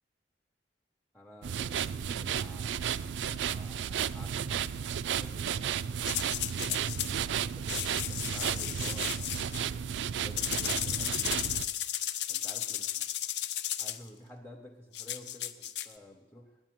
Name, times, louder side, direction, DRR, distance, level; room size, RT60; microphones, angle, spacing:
voice 1, 1.1-3.1 3.4-4.7 5.2-5.8 6.6-7.2 7.5-9.8 10.1-11.6 12.3-13.1 13.8-16.6, left 1 dB, 5° left, 0 dB, 0.8 m, -51 dB
sound 1, 1.4-11.7, right 8 dB, 85° right, 0.4 m, -33 dB
sound 2, 6.0-7.1 7.7-9.6 10.4-14.0 14.9-15.9, left 12 dB, 70° left, 0.5 m, -34 dB
9.3 x 8.8 x 9.3 m, 1.2 s
head